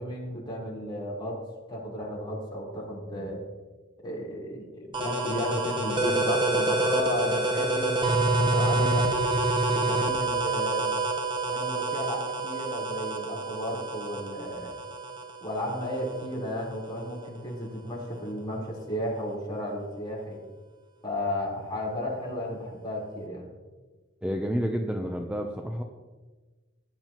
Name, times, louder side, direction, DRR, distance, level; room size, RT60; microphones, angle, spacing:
voice 1, 0.0-1.4 1.7-3.4 4.0-9.1 9.7-10.9 11.5-14.7 15.4-20.4 21.0-23.5, left 1 dB, 25° left, -5 dB, 4.0 m, -33 dB
sound 1, 4.9-16.3, right 2 dB, 25° right, 1.2 m, -27 dB
voice 2, 24.2-25.8, equal, 5° right, 3 dB, 0.6 m, -29 dB
17.0 x 11.0 x 3.0 m, 1.3 s
head